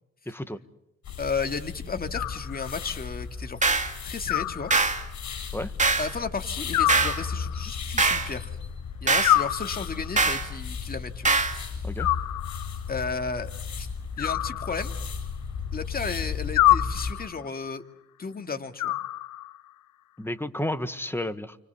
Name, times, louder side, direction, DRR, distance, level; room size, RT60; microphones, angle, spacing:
voice 1, 0.3-0.6 5.5-5.7 11.8-12.1 20.2-21.6, left 1 dB, 5° left, 10 dB, 1.6 m, -31 dB
sound 1, 1.0-17.1, left 5 dB, 65° left, 7.9 m, -35 dB
voice 2, 1.2-3.6 4.0-4.7 6.0-8.6 9.0-11.3 12.9-13.5 13.8-13.9 14.2-14.9 15.7-17.8 18.2-19.0, left 4 dB, 30° left, 6 dB, 2.3 m, -33 dB
Animal, 2.1-3.0 4.3-5.3 6.7-7.8 9.2-10.2 12.0-12.9 14.2-15.3 16.6-17.5 18.8-19.7, left 15 dB, 80° left, 1.0 m, -27 dB
sound 2, 3.6-3.9 4.7-5.0 5.8-6.1 6.9-7.2 8.0-8.3 9.1-9.4 10.2-10.5 11.3-11.6, right 3 dB, 25° right, 2.9 m, -22 dB
30.0 x 24.5 x 7.1 m, 0.81 s
cardioid pair, 90°, 30 cm